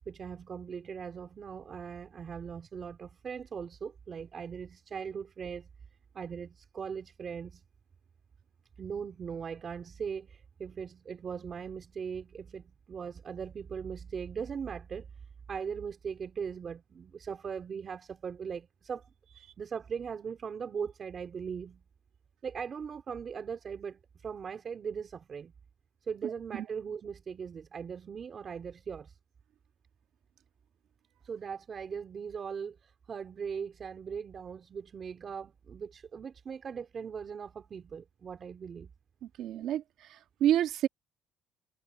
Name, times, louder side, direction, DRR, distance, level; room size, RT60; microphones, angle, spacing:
voice 1, 0.0-5.7 6.1-7.6 8.8-15.1 15.5-19.0 19.4-21.8 22.4-25.5 26.0-29.2 31.2-38.9, right 6 dB, 35° right, 4.2 m, -39 dB
voice 2, 39.4-40.9, right 11 dB, 75° right, 1.6 m, -29 dB
cardioid pair, 150°, 0 cm